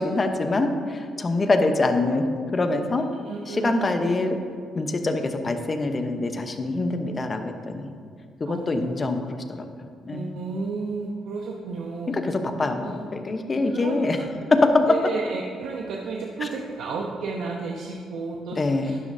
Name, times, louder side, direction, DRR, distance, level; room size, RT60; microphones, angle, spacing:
voice 1, 0.0-2.3 2.5-3.1 3.5-4.4 4.7-7.9 8.4-9.6 10.0-10.4 12.1-14.2 14.5-14.7 16.4-16.5 18.6-19.0, left 2 dB, 30° left, 6 dB, 1.0 m, -24 dB
voice 2, 3.2-4.0 8.5-9.1 10.1-12.1 12.8-12.9 13.7-14.3 14.6-19.0, right 4 dB, 75° right, 0 dB, 0.8 m, -32 dB
12.0 x 10.5 x 2.8 m, 2.1 s
cardioid pair, 90°, 0 cm